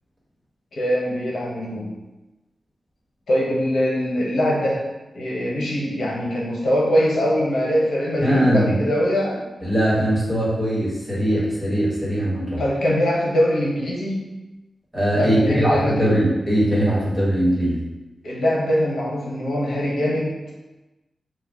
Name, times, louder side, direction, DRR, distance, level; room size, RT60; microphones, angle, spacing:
voice 1, 0.7-2.0 3.3-4.8 5.1-9.4 12.6-14.2 15.2-16.2 18.2-20.4, equal, 85° left, -4 dB, 0.9 m, -22 dB
voice 2, 8.2-8.8 9.6-12.6 14.9-17.8, equal, 5° left, -8 dB, 1.4 m, -20 dB
4.8 x 2.3 x 3.5 m, 1.1 s
wide cardioid pair, 125°, 0 cm